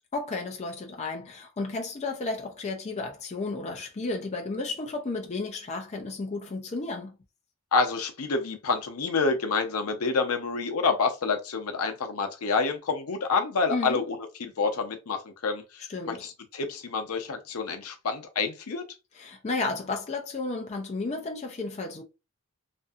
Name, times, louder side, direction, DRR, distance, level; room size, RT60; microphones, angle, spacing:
voice 1, 0.1-7.2 13.7-14.0 15.9-16.3 19.2-22.0, left 3 dB, 30° left, 0.4 m, -33 dB
voice 2, 7.7-18.8, left 4 dB, 85° left, 0.6 m, -28 dB
2.6 x 2.6 x 2.3 m
head